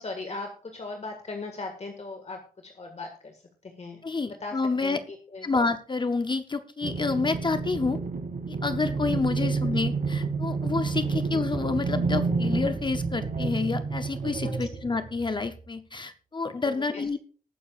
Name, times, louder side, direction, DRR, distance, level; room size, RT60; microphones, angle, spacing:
voice 1, 0.0-4.0 4.3-5.5 9.4-9.5 11.1-11.2 14.4-14.7 16.6-17.2, left 3 dB, 45° left, 3 dB, 1.8 m, -39 dB
voice 2, 4.0-5.0 5.4-8.0 8.5-17.2, left 4 dB, 30° left, 9 dB, 0.7 m, -29 dB
sound 1, 6.8-15.5, right 4 dB, 55° right, 2.0 m, -29 dB
19.0 x 9.7 x 2.4 m, 0.39 s
wide cardioid pair, 170°, 15 cm